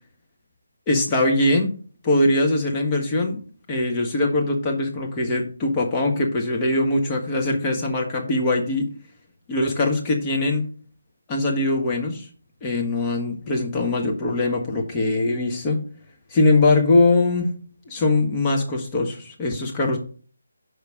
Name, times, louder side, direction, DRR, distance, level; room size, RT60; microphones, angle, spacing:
voice 1, 0.9-1.7 2.0-3.4 3.7-8.9 9.5-10.7 11.3-12.3 12.6-15.8 16.3-17.5 17.9-20.0, left 2 dB, 20° left, 0 dB, 1.4 m, -21 dB
5.5 x 5.0 x 6.4 m, 0.42 s
figure-of-eight pair, 155°, 0 cm